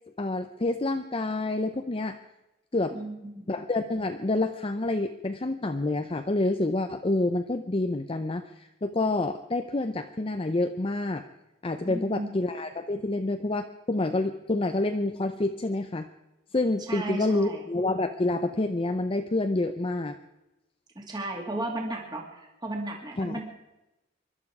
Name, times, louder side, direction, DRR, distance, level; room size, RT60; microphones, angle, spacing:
voice 1, 0.2-2.2 2.7-3.0 3.5-11.2 11.6-16.1 16.5-20.2 23.2-23.4, left 2 dB, 30° left, 7 dB, 0.6 m, -28 dB
voice 2, 2.9-3.5 11.8-12.3 16.9-17.6 20.9-23.4, right 2 dB, 20° right, 0 dB, 2.5 m, -34 dB
24.0 x 12.0 x 4.8 m, 0.96 s
head